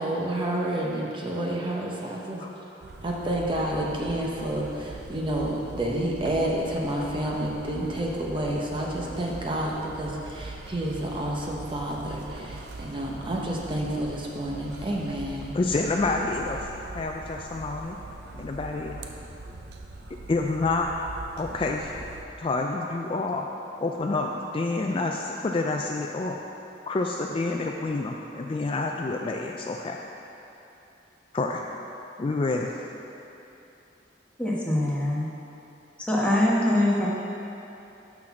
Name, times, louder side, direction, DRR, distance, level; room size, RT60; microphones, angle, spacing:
voice 1, 0.0-2.4 3.0-15.6, right 1 dB, 30° right, -2 dB, 0.8 m, -29 dB
sound 1, 2.8-22.2, right 2 dB, 65° right, 0.6 m, -42 dB
voice 2, 15.5-16.7 16.9-18.0 18.3-19.0 20.3-20.9 21.4-21.9 22.4-23.5 23.8-26.4 26.9-30.0 31.3-31.6 32.2-32.7, left 3 dB, 30° left, 1 dB, 0.3 m, -28 dB
voice 3, 34.4-35.3 36.0-37.1, left 1 dB, 5° left, -6 dB, 1.2 m, -23 dB
6.4 x 5.9 x 5.8 m, 2.9 s
head